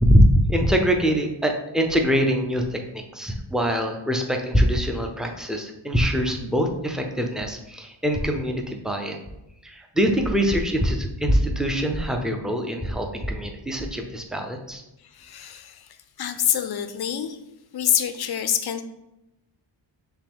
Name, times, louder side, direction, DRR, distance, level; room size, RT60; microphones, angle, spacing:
voice 1, 0.0-9.2 9.6-14.8, equal, ahead, 3 dB, 0.5 m, -23 dB
voice 2, 15.1-15.9 16.2-17.4 17.7-18.8, left 9 dB, 55° left, 9 dB, 0.5 m, -26 dB
5.8 x 2.2 x 3.5 m, 0.91 s
cardioid pair, 70°, 48 cm